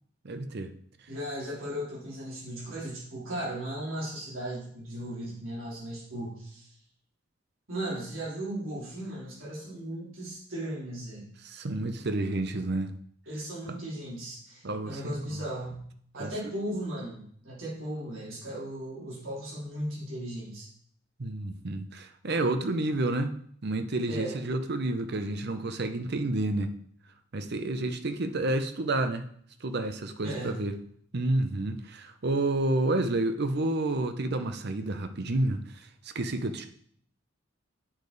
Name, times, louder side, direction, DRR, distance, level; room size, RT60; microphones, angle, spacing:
voice 1, 0.2-0.7 11.4-12.9 13.7-13.8 14.6-15.4 16.2-16.5 21.2-23.3 23.6-26.7 27.3-29.3 29.6-30.8 31.1-36.7, right 2 dB, 55° right, 0.7 m, -30 dB
voice 2, 1.1-6.7 7.7-11.3 13.3-15.8 16.1-20.7 24.1-24.4 30.2-30.6, right 1 dB, 85° right, 3.2 m, -36 dB
8.8 x 5.1 x 4.0 m
head